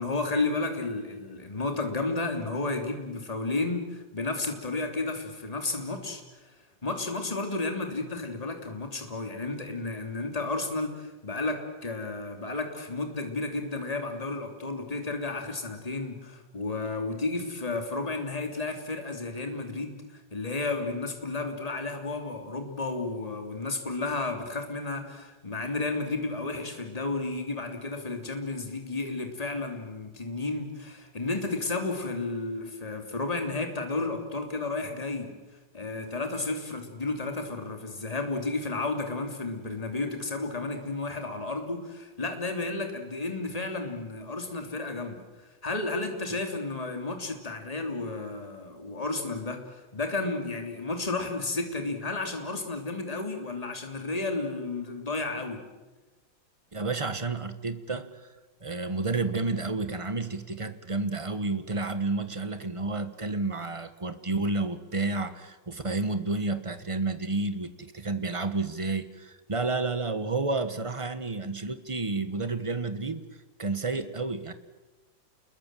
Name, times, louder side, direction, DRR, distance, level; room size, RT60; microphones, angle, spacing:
voice 1, 0.0-6.5 6.8-35.3 35.7-45.2 45.6-55.6, left 3 dB, 20° left, 4 dB, 3.0 m, -32 dB
voice 2, 56.7-58.3 58.6-73.3 73.6-74.5, right 3 dB, 20° right, 10 dB, 1.1 m, -30 dB
28.5 x 22.0 x 7.6 m, 1.1 s
omnidirectional pair, 2.1 m